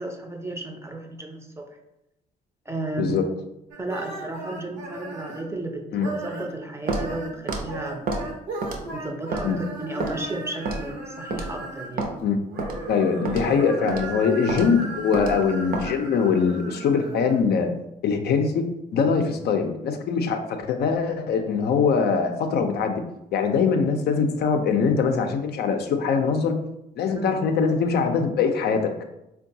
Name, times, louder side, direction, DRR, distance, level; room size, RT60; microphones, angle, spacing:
voice 1, 0.0-1.8 2.7-3.2 3.8-8.1 8.9-12.1 27.1-27.3, right 2 dB, 15° right, 3 dB, 0.5 m, -34 dB
sound 1, 3.7-5.5 5.9-6.5 6.8-12.0 12.4-17.4, right 2 dB, 80° right, 0.8 m, -36 dB
Walk footsteps, 6.9-7.1 7.5-7.6 8.1-8.2 8.6-8.9 9.3-9.5 10.0-10.1 10.7-10.9 11.3-11.5 12.0-12.1 12.6-12.8 13.2-13.5 13.9-14.0 14.5-14.7 15.1-15.3 15.7-15.9, right 3 dB, 50° right, 0.6 m, -28 dB
voice 2, 12.9-17.7 18.0-23.0 23.3-26.6 27.0-28.9, left 5 dB, 60° left, 5 dB, 0.4 m, -22 dB
3.6 x 2.2 x 2.7 m, 0.87 s
supercardioid pair, 65°, 19 cm